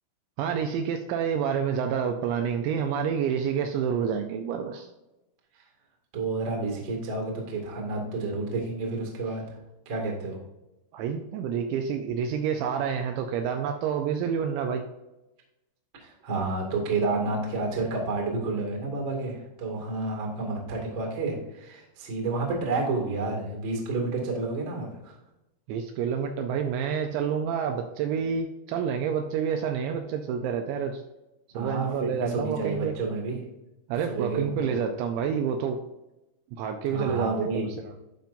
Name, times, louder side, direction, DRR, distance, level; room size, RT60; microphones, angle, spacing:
voice 1, 0.4-4.9 10.9-14.9 25.7-31.0 31.6-32.9 33.9-35.8 36.5-37.9, right 7 dB, 85° right, 5 dB, 2.7 m, -28 dB
voice 2, 6.1-9.6 9.8-10.4 16.0-25.2 31.5-33.4 34.1-34.7 36.8-37.7, right 3 dB, 45° right, 0 dB, 1.5 m, -30 dB
12.0 x 5.3 x 2.6 m, 0.96 s
omnidirectional pair, 5.6 m